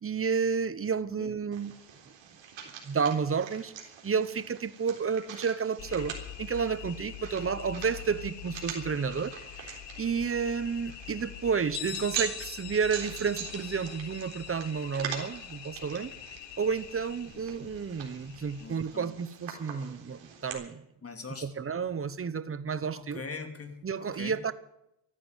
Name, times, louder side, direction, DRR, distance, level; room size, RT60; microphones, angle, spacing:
voice 1, 0.0-1.7 2.8-3.7 4.0-16.1 16.6-20.8 21.4-23.2 23.8-24.5, right 6 dB, 30° right, 1.0 m, -31 dB
sound 1, 1.5-20.5, right 8 dB, 85° right, 3.7 m, -43 dB
sound 2, 5.8-18.7, left 13 dB, 70° left, 1.0 m, -45 dB
Bell, 11.7-17.3, left 11 dB, 85° left, 1.5 m, -45 dB
voice 2, 18.6-19.1 21.0-21.5 22.9-24.4, left 4 dB, 30° left, 2.8 m, -42 dB
14.0 x 10.5 x 9.0 m
cardioid pair, 90°, 44 cm